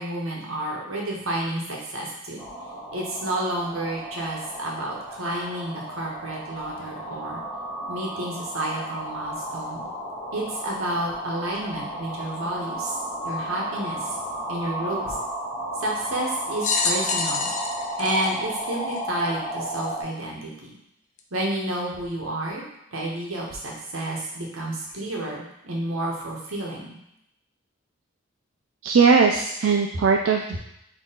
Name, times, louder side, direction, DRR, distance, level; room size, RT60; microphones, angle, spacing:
voice 1, 0.0-2.4 2.9-7.4 7.9-9.8 10.3-13.0 13.2-14.2 14.5-15.2 15.8-17.5 18.0-20.7 21.3-22.6 22.9-26.9, right 1 dB, 80° right, -2 dB, 1.1 m, -30 dB
sound 1, 2.4-20.0, equal, 10° left, 1.2 m, -34 dB
sound 2, 16.6-19.3 20.0-20.1 21.2-21.3, left 4 dB, 35° left, 0.4 m, -27 dB
voice 2, 28.8-30.6, right 5 dB, 65° right, 1 dB, 0.3 m, -19 dB
3.8 x 3.1 x 4.2 m, 0.79 s
head